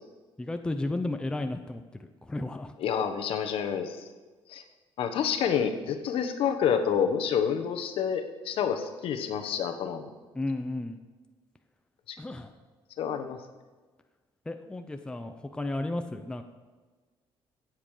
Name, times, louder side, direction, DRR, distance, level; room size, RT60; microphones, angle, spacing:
voice 1, 0.4-2.7 10.3-11.0 12.2-12.5 14.5-16.4, left 2 dB, 10° left, 7 dB, 0.7 m, -33 dB
voice 2, 2.8-4.0 4.5-4.6 5.0-10.1 12.1-12.2 13.0-13.4, left 7 dB, 70° left, 7 dB, 1.2 m, -28 dB
16.5 x 7.6 x 5.0 m, 1.3 s
cardioid pair, 150°, 10 cm